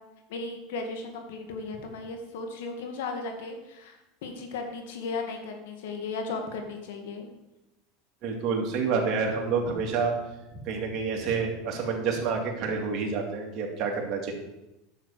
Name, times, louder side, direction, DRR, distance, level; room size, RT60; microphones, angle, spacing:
voice 1, 0.3-7.3, left 3 dB, 80° left, 4 dB, 2.0 m, -36 dB
voice 2, 8.2-10.1 10.5-14.3, right 5 dB, 50° right, 1 dB, 2.5 m, -28 dB
9.9 x 7.1 x 4.9 m, 0.94 s
supercardioid pair, 115°, 0 cm